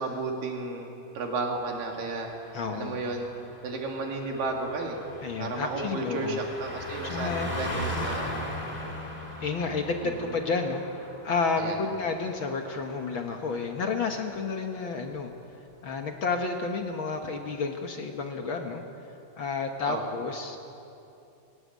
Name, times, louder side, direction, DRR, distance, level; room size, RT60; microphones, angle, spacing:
voice 1, 0.0-2.3 2.7-3.3 3.6-5.0 5.4-8.6 10.0-10.3 11.6-11.8 19.9-20.1, right 3 dB, 85° right, 1 dB, 4.0 m, -33 dB
Car passing by, 1.6-13.6 13.9-14.1, left 1 dB, 15° left, 2.6 m, -39 dB
voice 2, 2.5-3.0 5.2-6.4 7.0-7.5 9.4-10.8 11.2-15.3 15.8-18.8 19.4-20.6, left 4 dB, 60° left, 4 dB, 1.4 m, -30 dB
19.0 x 18.5 x 9.5 m, 2.8 s
omnidirectional pair, 3.8 m